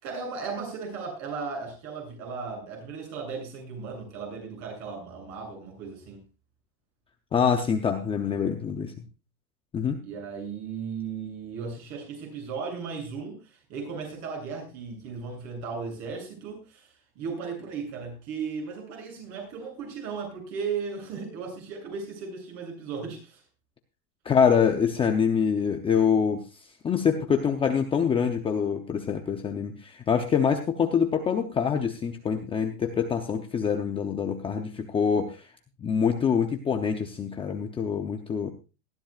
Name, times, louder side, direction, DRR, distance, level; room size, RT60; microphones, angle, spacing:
voice 1, 0.0-6.2 10.0-23.4, right 5 dB, 40° right, 2 dB, 7.7 m, -36 dB
voice 2, 7.3-8.9 9.7-10.0 24.2-26.4 26.8-35.5 35.8-38.5, left 7 dB, 15° left, 4 dB, 0.6 m, -25 dB
19.5 x 13.5 x 2.4 m, 0.30 s
supercardioid pair, 160°, 42 cm